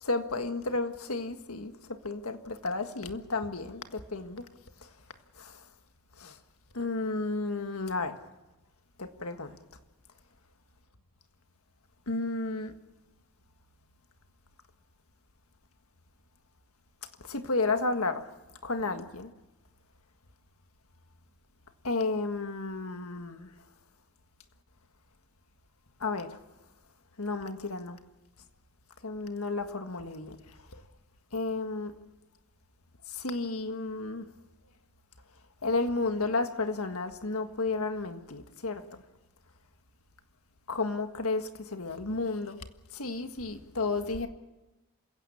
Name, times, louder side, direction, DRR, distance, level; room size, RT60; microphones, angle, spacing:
voice 1, 0.0-4.5 4.8-4.9 5.4-5.6 6.2-6.4 6.7-8.1 9.0-9.6 12.1-12.7 17.2-18.3 18.6-19.3 21.8-23.5 26.0-26.4 27.2-28.0 29.0-30.8 31.3-31.9 33.1-34.3 35.6-39.0 40.7-42.6 42.9-44.3, left 3 dB, 75° left, 1.7 m, -32 dB
27.5 x 16.5 x 7.1 m
head